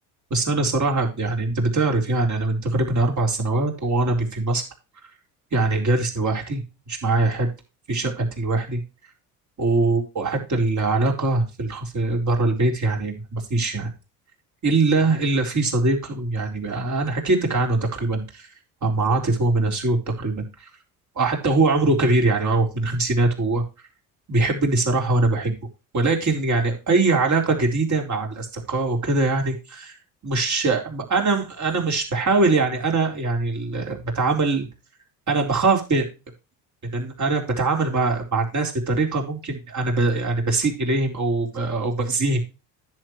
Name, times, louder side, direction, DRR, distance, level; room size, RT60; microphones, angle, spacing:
voice 1, 0.3-4.6 5.5-6.6 6.9-7.5 7.9-8.8 9.6-13.9 14.6-18.4 18.8-20.4 21.2-23.6 24.3-25.5 25.9-30.0 30.2-34.7 35.3-36.1 36.9-42.4, right 3 dB, 40° right, 2 dB, 4.2 m, -22 dB
10.5 x 8.4 x 3.1 m, 0.28 s
hypercardioid pair, 65°, 46 cm